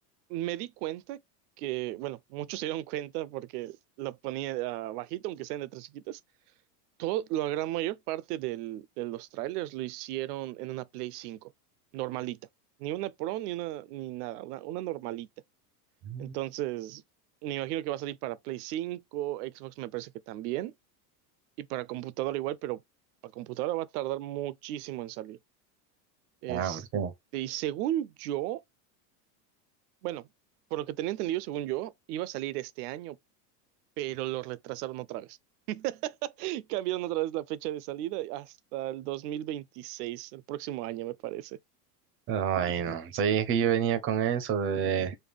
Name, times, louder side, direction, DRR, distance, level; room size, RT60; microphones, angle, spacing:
voice 1, 0.3-1.2 1.6-6.2 7.0-11.5 11.9-12.4 12.8-15.3 16.2-17.0 17.4-20.7 21.6-22.8 23.2-25.4 26.4-26.9 27.3-28.6 30.0-30.3 30.7-33.2 34.0-35.4 35.7-41.6, right 15 dB, 70° right, 0.6 m, -34 dB
voice 2, 26.5-27.1 42.3-45.2, right 8 dB, 25° right, 0.5 m, -28 dB
5.2 x 2.2 x 3.4 m
supercardioid pair, 140°, 50 cm